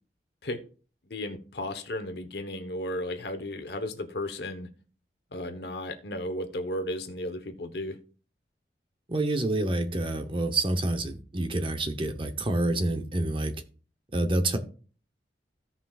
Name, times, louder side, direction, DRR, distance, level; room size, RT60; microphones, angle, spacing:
voice 1, 1.1-4.7 5.3-8.0, left 1 dB, 65° left, 8 dB, 1.0 m, -34 dB
voice 2, 9.1-13.5 14.1-14.6, right 2 dB, 30° right, 6 dB, 0.9 m, -27 dB
16.0 x 5.7 x 2.4 m, 0.40 s
head